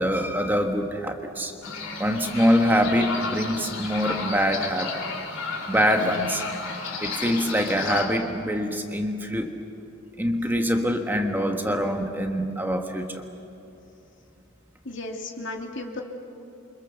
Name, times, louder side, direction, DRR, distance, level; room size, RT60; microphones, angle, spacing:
voice 1, 0.0-1.5 2.0-5.0 5.7-6.4 7.0-9.5 10.2-13.2, equal, 10° right, 3 dB, 1.4 m, -24 dB
sound 1, 1.6-8.0, left 4 dB, 85° left, 4.5 m, -33 dB
voice 2, 14.8-16.0, left 2 dB, 65° left, 1 dB, 2.9 m, -34 dB
29.0 x 25.5 x 7.0 m, 2.9 s
head